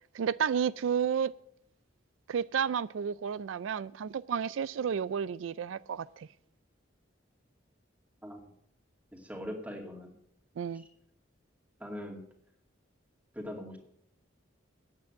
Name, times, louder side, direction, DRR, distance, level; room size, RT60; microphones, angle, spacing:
voice 1, 0.1-1.3 2.3-6.3 10.6-10.8, right 7 dB, 85° right, 0.4 m, -31 dB
voice 2, 9.1-10.1 10.7-10.9 11.8-12.2 13.3-13.8, equal, 10° right, 2.3 m, -41 dB
8.9 x 8.4 x 9.3 m
head